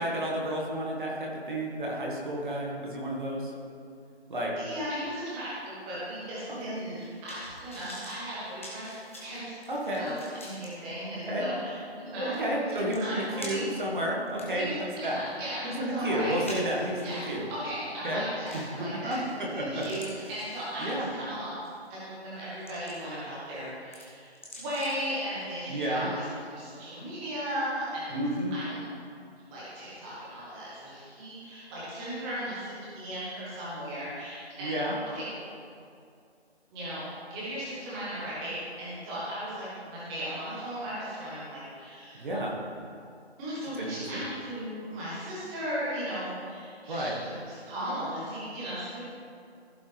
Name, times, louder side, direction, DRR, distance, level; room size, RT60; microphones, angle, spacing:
voice 1, 0.0-3.5 4.3-4.6 6.6-6.8 9.7-10.1 11.3-11.5 12.1-15.2 15.6-17.5 18.0-18.2 18.5-19.2 19.5-19.8 20.8-21.1 25.7-26.1 28.1-28.5 34.6-35.0 42.2-42.5 43.8-44.2 46.9-47.1, right 1 dB, 50° right, -3 dB, 1.9 m, -31 dB
voice 2, 4.6-8.9 9.2-9.5 9.9-10.1 10.4-13.7 14.5-16.6 17.0-21.5 21.9-24.3 24.6-26.3 26.5-28.1 28.5-28.8 29.5-35.5 36.7-42.3 43.4-47.3 47.7-49.0, equal, 5° right, -9 dB, 1.1 m, -36 dB
sound 1, 6.7-10.7 11.2-11.3 12.5-12.6 12.9-13.8 14.3-17.4 18.5-18.8 19.1-19.5 19.8-21.1 21.6-21.9 22.3-23.2 23.5-25.1 25.4-25.5, left 1 dB, 10° left, 0.7 m, -46 dB
15.0 x 5.3 x 3.4 m, 2.3 s
figure-of-eight pair, 160°, 33 cm